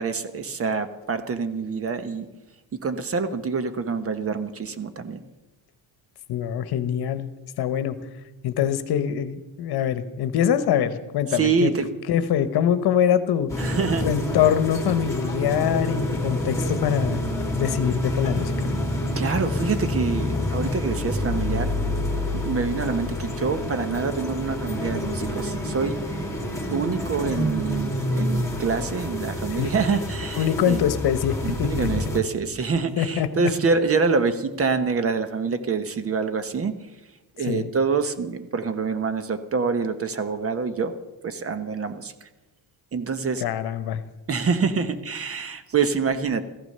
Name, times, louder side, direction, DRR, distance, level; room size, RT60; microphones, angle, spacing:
voice 1, 0.0-2.3 2.7-5.2 11.3-11.9 13.6-14.1 19.1-21.8 22.3-26.0 26.7-30.8 31.4-36.8 37.4-40.9 41.2-42.3 42.9-43.4 44.3-46.4, right 5 dB, 30° right, 11 dB, 1.0 m, -26 dB
voice 2, 6.3-8.0 8.4-11.7 12.1-17.2 17.6-18.7 29.6-29.7 30.4-31.9 33.0-33.3 37.5-37.7 43.4-44.0, left 9 dB, 55° left, 12 dB, 1.2 m, -24 dB
sound 1, 13.5-32.2, left 1 dB, 5° left, 2.5 m, -28 dB
15.0 x 14.5 x 6.7 m, 1.1 s
cardioid pair, 155°, 45 cm